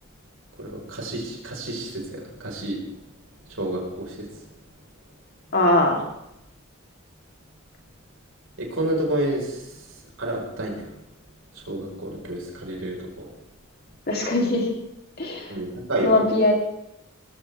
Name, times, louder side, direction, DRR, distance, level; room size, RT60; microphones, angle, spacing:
voice 1, 0.6-2.8 3.5-4.2 8.6-9.7 10.2-10.9 11.5-13.3 15.5-16.2, right 1 dB, 75° right, -1 dB, 4.8 m, -29 dB
voice 2, 5.5-6.0 14.1-14.7 15.2-15.5 16.0-16.5, left 2 dB, 50° left, 0 dB, 3.4 m, -20 dB
19.5 x 15.0 x 3.6 m, 0.84 s
head